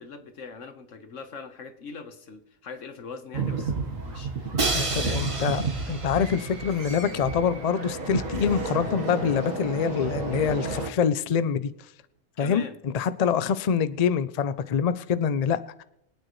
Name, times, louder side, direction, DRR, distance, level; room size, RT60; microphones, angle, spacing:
voice 1, 0.0-5.4 12.4-12.8, left 4 dB, 65° left, 1.5 m, -41 dB
sound 1, 3.3-10.9, right 4 dB, 75° right, 1.9 m, -31 dB
Crash cymbal, 4.6-6.6, right 3 dB, 25° right, 1.1 m, -30 dB
voice 2, 5.1-5.6 5.9-11.7 12.4-15.8, left 7 dB, 85° left, 0.3 m, -25 dB
24.0 x 9.1 x 3.1 m
omnidirectional pair, 1.4 m